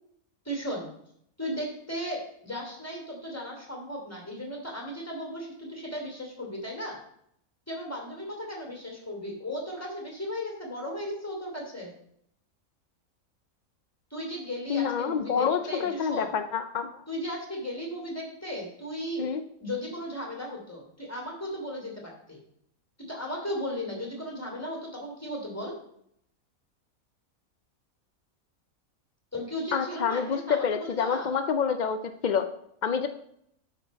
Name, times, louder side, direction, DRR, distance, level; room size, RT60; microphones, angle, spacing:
voice 1, 0.4-0.9 1.4-7.0 7.7-11.9 14.1-16.3 17.1-19.3 19.6-22.4 23.1-25.7 29.3-31.3, equal, 10° left, -1 dB, 2.7 m, -36 dB
voice 2, 14.7-17.0 19.2-19.4 29.7-32.0 32.2-32.5 32.8-33.1, left 7 dB, 80° left, 9 dB, 0.4 m, -27 dB
12.0 x 4.3 x 5.3 m, 0.71 s
omnidirectional pair, 1.5 m